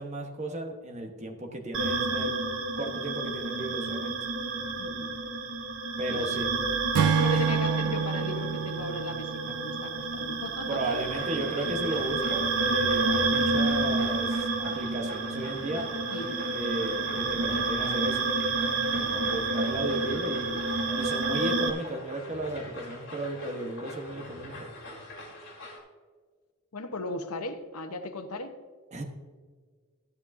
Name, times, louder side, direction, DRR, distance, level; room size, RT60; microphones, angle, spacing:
voice 1, 0.0-2.3 2.8-4.2 6.0-6.5 7.3-7.5 10.7-15.9 16.5-18.3 18.9-20.6 20.9-24.7 28.9-29.0, right 2 dB, 30° right, 2 dB, 1.2 m, -35 dB
sound 1, 1.7-21.7, right 3 dB, 60° right, 0.9 m, -29 dB
Acoustic guitar / Strum, 6.9-10.4, right 6 dB, 80° right, 0.3 m, -28 dB
voice 2, 7.1-11.1 16.1-16.5 26.7-28.5, left 2 dB, 85° left, 8 dB, 1.0 m, -37 dB
sound 2, 10.8-25.8, left 1 dB, 55° left, 3.4 m, -44 dB
13.5 x 10.0 x 2.7 m, 1.6 s
head